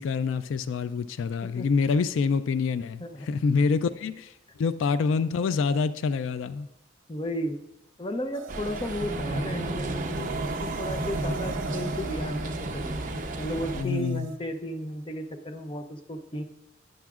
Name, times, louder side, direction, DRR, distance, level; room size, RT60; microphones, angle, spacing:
voice 1, 0.0-6.7 13.7-14.3, left 5 dB, 80° left, 0.3 m, -26 dB
voice 2, 3.0-3.4 7.1-7.6 8.0-13.0 13.4-16.4, equal, 25° left, 0.6 m, -34 dB
sound 1, 8.3-14.4, right 6 dB, 85° right, 0.7 m, -41 dB
sound 2, 8.5-13.8, right 2 dB, 45° right, 0.7 m, -32 dB
12.0 x 9.3 x 2.4 m
head